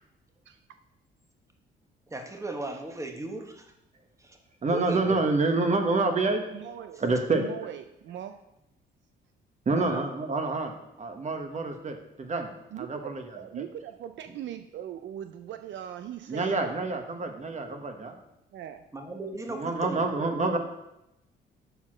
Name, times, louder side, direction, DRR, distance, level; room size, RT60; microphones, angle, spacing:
voice 1, 2.1-3.7 4.2-4.4 4.7-5.2 9.7-10.0 18.9-20.6, right 2 dB, 15° right, 4 dB, 1.2 m, -37 dB
voice 2, 4.6-6.4 7.0-7.4 9.6-10.7 11.0-12.5 12.8-13.6 16.3-18.2 19.5-20.6, right 3 dB, 35° right, 5 dB, 1.2 m, -27 dB
voice 3, 6.5-7.0 7.3-8.4 12.7-16.6 18.5-18.8, right 10 dB, 70° right, 8 dB, 0.5 m, -40 dB
6.9 x 4.3 x 6.2 m, 0.87 s
cardioid pair, 90°, 20 cm